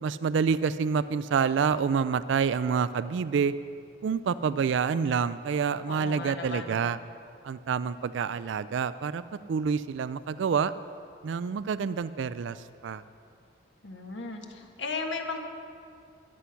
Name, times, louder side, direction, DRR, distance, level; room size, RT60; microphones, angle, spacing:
voice 1, 0.0-3.5 4.0-7.0 7.4-9.2 9.5-10.7 11.2-13.0, right 6 dB, 80° right, 15 dB, 0.3 m, -27 dB
voice 2, 5.9-6.8 13.8-15.4, left 3 dB, 75° left, 3 dB, 1.5 m, -36 dB
14.0 x 11.5 x 5.8 m, 2.4 s
head